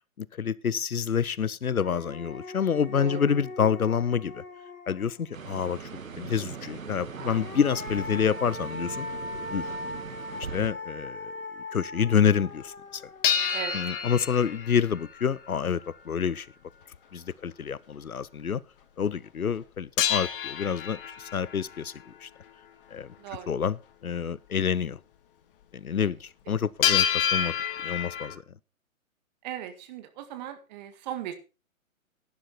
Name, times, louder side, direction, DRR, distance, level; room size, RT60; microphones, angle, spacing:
voice 1, 0.2-4.4 4.9-5.9 6.2-9.1 9.5-9.7 10.5-11.3 11.7-13.0 13.7-16.5 17.1-18.6 19.0-22.3 22.9-23.1 23.5-25.0 25.7-27.5 27.8-28.4, left 7 dB, 90° left, 0.7 m, -28 dB
sound 1, 1.2-1.3 1.7-5.4 7.0-14.3, left 2 dB, 75° left, 4.9 m, -40 dB
sound 2, 5.3-10.7, right 6 dB, 70° right, 1.7 m, -40 dB
sound 3, 13.2-15.6 20.0-21.8 26.8-28.3, left 8 dB, 40° left, 1.6 m, -28 dB
voice 2, 13.5-13.9 23.2-23.5 26.0-26.1 29.4-31.4, right 10 dB, 30° right, 1.9 m, -38 dB
11.5 x 10.5 x 4.3 m
figure-of-eight pair, 130°, 42 cm